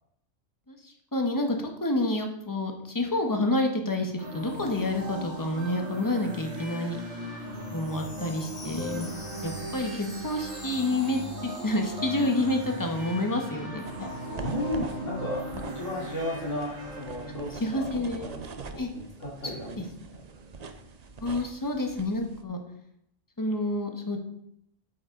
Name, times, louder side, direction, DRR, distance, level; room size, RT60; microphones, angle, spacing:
voice 1, 0.7-7.0 7.7-9.1 9.4-14.1 17.6-18.3 18.8-18.9 19.4-19.5 19.8-19.9 21.2-22.6 23.4-24.2, left 1 dB, 15° left, 3 dB, 1.2 m, -29 dB
sound 1, 4.2-17.7, equal, 65° right, 2.1 m, -38 dB
Chime, 7.5-13.4 13.7-13.8 14.4-14.5, left 2 dB, 45° left, 2.0 m, -48 dB
sound 2, 13.9-22.4, right 4 dB, 40° right, 0.6 m, -44 dB
voice 2, 14.0-20.2, equal, 70° left, -3 dB, 3.0 m, -35 dB
8.7 x 8.0 x 3.8 m, 0.74 s
omnidirectional pair, 1.3 m